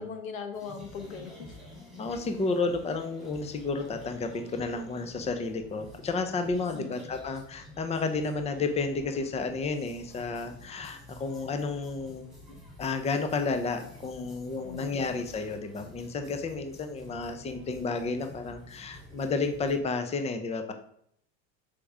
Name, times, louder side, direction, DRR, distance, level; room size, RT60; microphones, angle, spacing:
voice 1, 0.0-1.6 6.7-7.0 14.6-15.0, left 5 dB, 90° left, 6 dB, 1.2 m, -39 dB
sound 1, 0.5-19.8, left 1 dB, ahead, 2.8 m, -50 dB
voice 2, 2.0-12.2 12.8-20.7, left 4 dB, 15° left, 8 dB, 0.7 m, -31 dB
6.7 x 5.0 x 3.5 m, 0.68 s
supercardioid pair, 110°, 40 cm